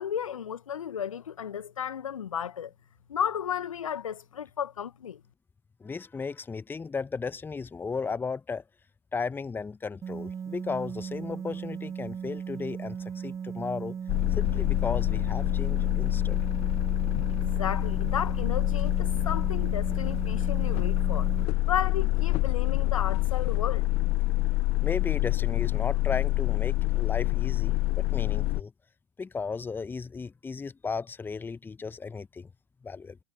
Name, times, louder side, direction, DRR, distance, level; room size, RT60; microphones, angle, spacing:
voice 1, 0.0-2.7 3.1-5.2 17.3-23.9, left 8 dB, 75° left, 1.1 m, -33 dB
voice 2, 5.8-8.6 9.1-14.0 14.4-16.4 24.8-28.7 29.2-32.5 32.8-33.2, left 5 dB, 10° left, 1.0 m, -35 dB
sound 1, 10.0-21.4, right 7 dB, 15° right, 0.6 m, -37 dB
sound 2, 14.1-28.6, left 20 dB, 35° left, 0.6 m, -26 dB
figure-of-eight pair, 95°, 17 cm